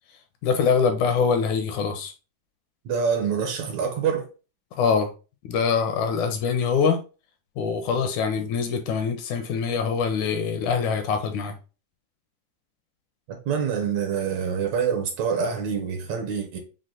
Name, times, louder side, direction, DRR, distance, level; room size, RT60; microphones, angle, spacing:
voice 1, 0.4-2.1 4.8-5.1 5.4-7.0 7.6-11.5, left 6 dB, 80° left, 1.9 m, -24 dB
voice 2, 2.9-4.3 13.3-16.6, right 6 dB, 70° right, 2.0 m, -26 dB
6.3 x 2.1 x 3.7 m
omnidirectional pair, 3.7 m